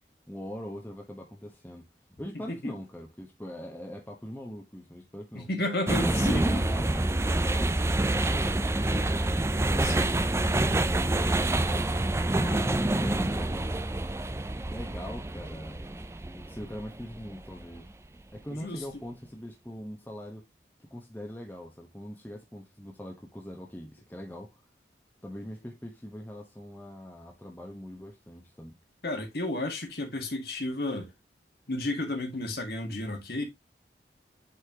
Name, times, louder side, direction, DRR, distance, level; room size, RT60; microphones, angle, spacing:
voice 1, 0.3-1.9 2.2-5.5 6.2-9.9 10.5-13.9 14.6-16.0 16.3-17.9 18.3-20.4 20.9-24.6 25.2-28.7, equal, 10° left, 1.1 m, -42 dB
voice 2, 5.3-6.7 9.7-10.1 18.5-18.8 29.0-31.1 31.7-33.4, left 1 dB, 60° left, 1.8 m, -32 dB
sound 1, 5.9-17.9, right 2 dB, 15° right, 0.4 m, -27 dB
8.2 x 4.3 x 2.9 m
head